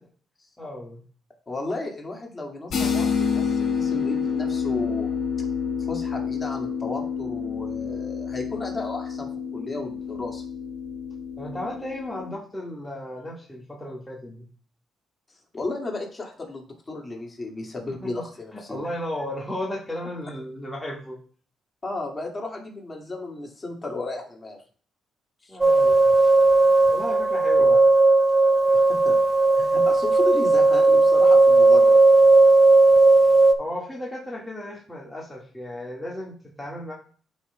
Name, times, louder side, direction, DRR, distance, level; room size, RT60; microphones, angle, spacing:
voice 1, 0.6-1.1 11.4-14.5 18.0-18.2 18.5-21.2 25.5-26.1 26.9-27.9 33.6-36.9, left 1 dB, 10° left, -4 dB, 1.7 m, -34 dB
voice 2, 1.5-5.1 5.8-10.4 15.3-18.8 21.8-24.6 25.4-25.6 27.6-27.7 28.7-29.2 29.6-32.0, left 2 dB, 25° left, 0 dB, 2.0 m, -34 dB
sound 1, 2.7-12.3, left 6 dB, 60° left, 2.3 m, -28 dB
sound 2, 25.6-33.5, right 2 dB, 15° right, 0.6 m, -16 dB
11.0 x 5.3 x 2.3 m, 0.43 s
cardioid pair, 90°, 0 cm